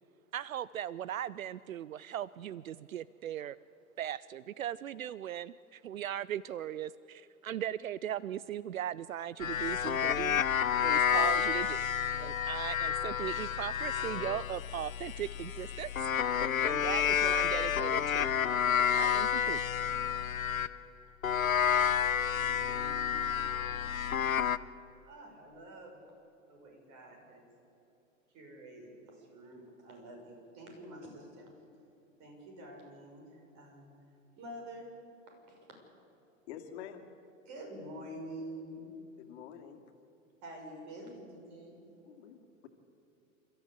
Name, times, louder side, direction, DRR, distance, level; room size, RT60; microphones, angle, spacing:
voice 1, 0.3-3.6 4.0-10.4 10.8-11.9 12.2-16.1 16.6-18.3 18.7-19.6, right 11 dB, 80° right, 19 dB, 0.5 m, -38 dB
sound 1, 9.4-20.8 21.2-24.6, left 8 dB, 85° left, 0.7 m, -30 dB
voice 2, 21.7-24.3 25.0-26.0 26.5-27.5 28.3-31.5 32.2-33.9 34.4-34.9 35.3-35.4 37.5-38.9 40.4-41.9, right 1 dB, 45° right, 2 dB, 6.5 m, -48 dB
voice 3, 36.5-37.0 39.2-39.8 42.0-42.7, left 9 dB, 50° left, 6 dB, 2.3 m, -47 dB
28.5 x 13.5 x 8.2 m, 2.8 s
figure-of-eight pair, 90°, 40 cm